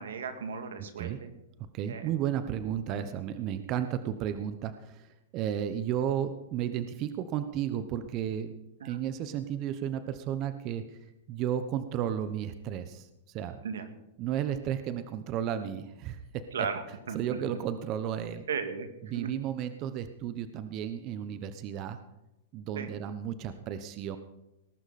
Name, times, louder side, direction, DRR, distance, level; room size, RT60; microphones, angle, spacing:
voice 1, 0.0-1.3 1.9-2.0 8.8-9.0 13.6-13.9 16.5-16.8 17.1-17.4 18.5-18.9 19.1-19.3 22.7-22.9, right 6 dB, 90° right, 8 dB, 2.2 m, -35 dB
voice 2, 0.8-1.2 1.7-8.6 8.8-11.0 11.3-13.6 14.2-16.7 17.1-18.4 19.1-22.0 22.5-24.2, right 10 dB, 40° right, 11 dB, 1.0 m, -33 dB
19.5 x 11.5 x 4.3 m, 0.92 s
hypercardioid pair, 135°, 0 cm